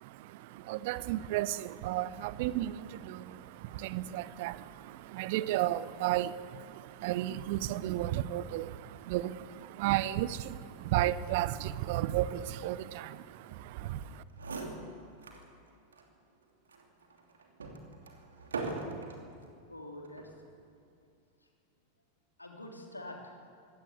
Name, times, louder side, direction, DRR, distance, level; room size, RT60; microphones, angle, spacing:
voice 1, 0.0-14.2, right 14 dB, 50° right, 0.8 m, -34 dB
sound 1, 14.0-14.1 14.3-15.5 15.9-16.0 16.7-19.3 20.0-20.4, right 3 dB, 70° right, 2.9 m, -41 dB
voice 2, 19.7-20.4 21.4-21.5 22.4-23.5, left 1 dB, 85° left, 3.3 m, -46 dB
24.0 x 17.0 x 8.3 m
figure-of-eight pair, 90°, 0 cm